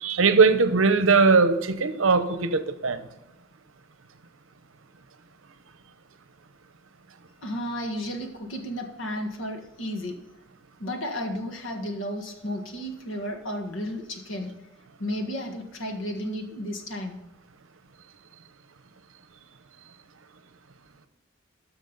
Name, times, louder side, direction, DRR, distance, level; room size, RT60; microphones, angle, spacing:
voice 1, 0.0-3.0, right 4 dB, 80° right, 0.8 m, -20 dB
voice 2, 7.4-10.2 10.8-14.5 15.0-17.2, equal, 70° left, 1.6 m, -33 dB
13.0 x 6.3 x 4.0 m
head